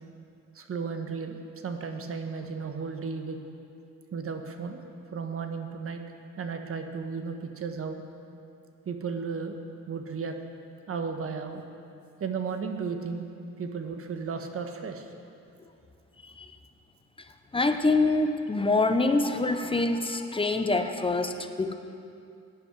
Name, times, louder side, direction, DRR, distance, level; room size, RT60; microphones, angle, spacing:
voice 1, 0.5-3.4 4.1-4.8 5.1-6.0 6.4-8.0 8.8-9.6 9.9-10.4 10.9-11.6 12.2-13.3 13.6-15.1, right 5 dB, 50° right, 5 dB, 1.4 m, -34 dB
voice 2, 16.2-16.6 17.2-21.7, left 3 dB, 20° left, 7 dB, 0.9 m, -26 dB
17.5 x 10.5 x 4.9 m, 2.5 s
cardioid pair, 90°, 30 cm